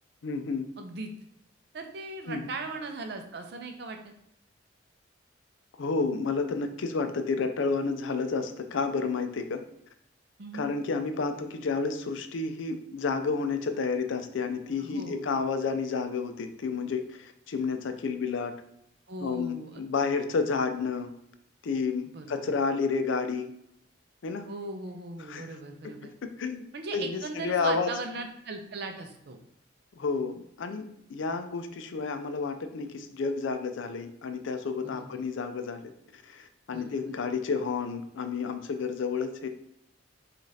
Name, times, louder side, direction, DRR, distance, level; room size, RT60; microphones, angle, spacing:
voice 1, 0.2-0.7 2.3-2.5 5.8-9.6 10.5-18.6 19.2-21.1 21.6-23.5 24.2-24.5 25.3-25.5 26.0-26.7 26.9-27.9 30.0-39.5, left 4 dB, 75° left, 8 dB, 0.4 m, -30 dB
voice 2, 0.8-1.1 1.7-4.1 10.4-10.7 14.8-15.4 19.1-20.2 22.1-22.6 24.5-26.1 26.7-29.4 34.8-35.1 36.7-37.1, right 3 dB, 55° right, 5 dB, 0.5 m, -39 dB
4.9 x 2.4 x 2.7 m, 0.76 s
head